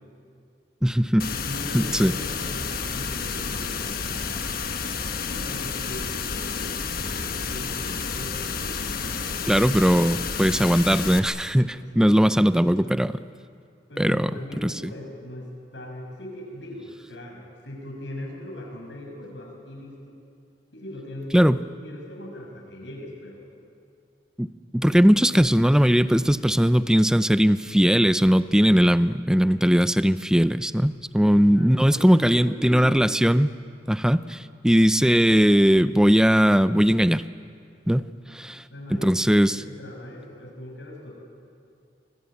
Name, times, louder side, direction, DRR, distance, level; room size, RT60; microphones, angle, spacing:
voice 1, 0.8-1.3 1.7-2.1 9.5-13.2 14.0-14.3 14.6-14.9 21.3-21.6 24.4-33.5 33.9-37.2 37.9-38.6 38.9-39.6, equal, 5° right, 14 dB, 0.5 m, -19 dB
sound 1, 1.2-11.2, left 5 dB, 55° left, 1.4 m, -30 dB
voice 2, 1.4-4.4 5.3-6.7 7.0-9.4 11.7-13.0 13.9-20.2 20.7-21.4 21.8-23.4 31.3-33.1 38.7-41.1, left 1 dB, 85° left, 1 dB, 6.1 m, -40 dB
25.5 x 20.5 x 8.6 m, 2.3 s
head